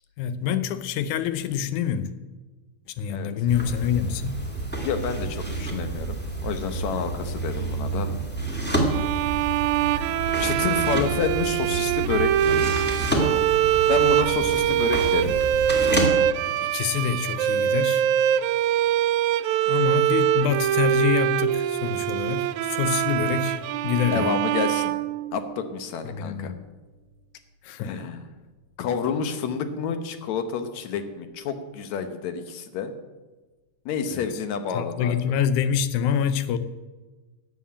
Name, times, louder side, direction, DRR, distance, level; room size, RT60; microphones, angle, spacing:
voice 1, 0.2-2.1 3.0-4.4 16.4-18.1 19.7-24.3 26.0-26.6 27.6-27.9 34.1-34.3 34.7-36.6, left 8 dB, 90° left, 2.2 m, -26 dB
sound 1, 3.5-16.1, right 2 dB, 5° left, 1.6 m, -29 dB
voice 2, 4.8-8.1 10.4-12.6 13.9-15.3 24.1-25.0 25.3-26.5 27.8-28.3 28.8-32.9 33.9-35.1, left 6 dB, 75° left, 2.2 m, -29 dB
sound 2, 8.9-25.7, right 11 dB, 80° right, 1.9 m, -23 dB
12.5 x 7.6 x 8.6 m
omnidirectional pair, 3.4 m